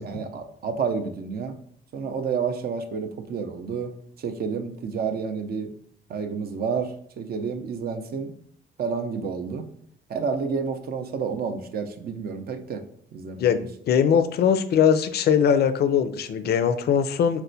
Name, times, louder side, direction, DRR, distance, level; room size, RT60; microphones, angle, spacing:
voice 1, 0.0-1.6 1.9-5.7 6.1-8.3 8.8-9.7 10.1-12.8 13.1-13.6, right 5 dB, 50° right, 6 dB, 0.5 m, -30 dB
voice 2, 13.4-17.4, left 7 dB, 55° left, 10 dB, 0.4 m, -21 dB
4.2 x 2.1 x 2.6 m, 0.63 s
cardioid pair, 90°, 20 cm